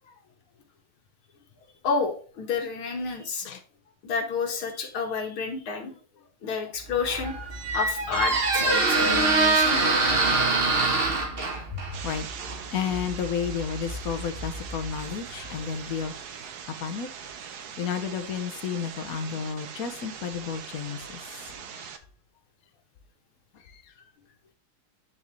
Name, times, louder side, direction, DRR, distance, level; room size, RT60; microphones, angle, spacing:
voice 1, 1.8-3.5 4.0-5.9 6.4-9.8, left 5 dB, 75° left, 2 dB, 2.4 m, -30 dB
Squeak, 6.9-15.7, right 3 dB, 35° right, 1.2 m, -25 dB
voice 2, 11.7-12.3 12.7-17.1 17.8-21.2 21.7-22.0 23.5-23.9, left 7 dB, 55° left, 8 dB, 1.2 m, -32 dB
sound 1, 11.9-22.0, right 7 dB, 60° right, 1.2 m, -41 dB
9.6 x 4.5 x 3.2 m, 0.41 s
omnidirectional pair, 2.3 m